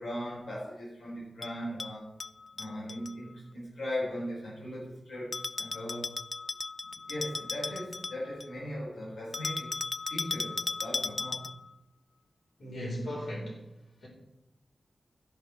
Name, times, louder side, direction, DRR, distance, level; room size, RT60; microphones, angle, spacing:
voice 1, 0.0-2.1 2.6-6.1 7.1-9.8 10.0-11.5, left 1 dB, 90° left, -5 dB, 4.2 m, -38 dB
Bell, 1.4-3.1 5.3-8.6 9.3-11.7, left 3 dB, 35° left, 0.3 m, -36 dB
voice 2, 12.6-13.6 14.0-14.1, equal, 70° left, -3 dB, 4.8 m, -36 dB
13.5 x 11.0 x 3.5 m, 0.94 s
wide cardioid pair, 140°, 0 cm